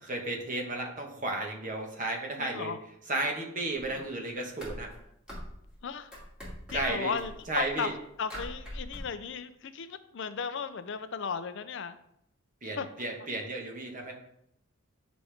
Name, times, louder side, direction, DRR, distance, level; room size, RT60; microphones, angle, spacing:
voice 1, 0.0-2.7 3.1-4.9 6.7-7.1 7.5-7.9 12.6-14.1, right 2 dB, 35° right, 1 dB, 1.4 m, -33 dB
voice 2, 2.4-2.8 4.0-4.1 5.8-6.1 6.7-7.9 8.2-12.0 12.8-12.9, left 6 dB, 55° left, 11 dB, 0.5 m, -35 dB
sound 1, 3.8-4.0 4.3-5.8 6.1-7.9 8.3-9.0, equal, 5° right, 2.3 m, -42 dB
9.6 x 5.1 x 3.5 m, 0.75 s
head